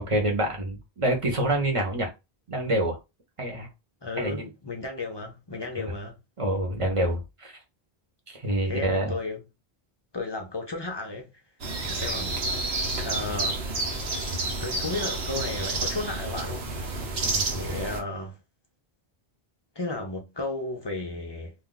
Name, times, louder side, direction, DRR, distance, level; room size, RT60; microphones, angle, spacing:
voice 1, 0.0-2.1 2.5-3.0 3.4-3.7 4.2-4.5 5.8-5.9 6.4-7.5 8.3-9.1 17.2-17.8, right 1 dB, 35° right, 0.9 m, -27 dB
voice 2, 4.0-6.2 8.7-9.4 10.1-11.3 11.9-12.4 13.0-13.8 14.6-16.8 17.5-18.4 19.8-21.5, left 3 dB, 35° left, 0.4 m, -34 dB
sound 1, 11.6-18.0, right 2 dB, 75° right, 1.0 m, -30 dB
2.4 x 2.2 x 3.8 m
omnidirectional pair, 1.1 m